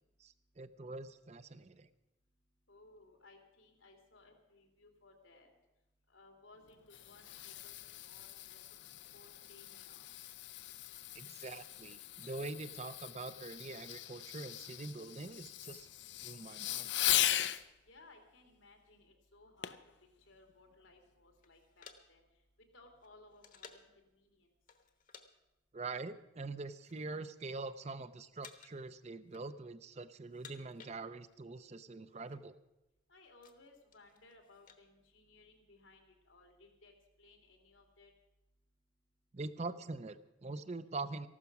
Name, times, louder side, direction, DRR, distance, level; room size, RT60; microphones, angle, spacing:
voice 1, 0.2-1.9 11.1-15.9 16.2-16.9 25.7-32.5 39.3-41.3, right 3 dB, 35° right, 13 dB, 0.5 m, -44 dB
voice 2, 2.7-5.5 6.1-8.6 9.1-10.1 17.8-19.8 20.2-22.2 22.7-24.5 33.1-36.9 37.2-38.1, left 2 dB, 85° left, 4 dB, 2.7 m, -62 dB
Fireworks, 6.6-17.6 19.6-19.9 20.5-20.6, left 13 dB, 65° left, 0.6 m, -39 dB
sound 1, 21.4-24.0 24.7-25.3 25.5-25.8 26.4-27.2 27.5-28.0 28.4-28.9 29.2-29.8 30.2-31.5 31.7-31.8 32.0-32.4 32.9-34.8, left 6 dB, 45° left, 1.1 m, -58 dB
14.5 x 12.5 x 6.0 m, 0.98 s
head